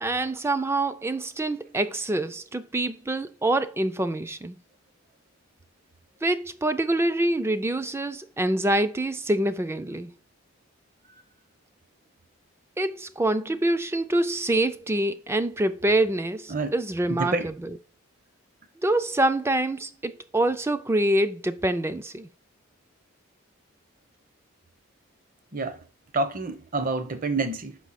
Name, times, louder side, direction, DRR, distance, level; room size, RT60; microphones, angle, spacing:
voice 1, 0.0-4.6 6.2-10.1 12.8-17.8 18.8-22.3, right 1 dB, 10° right, 0.3 m, -26 dB
voice 2, 26.1-27.8, right 3 dB, 40° right, 0.7 m, -28 dB
6.1 x 5.4 x 4.1 m
head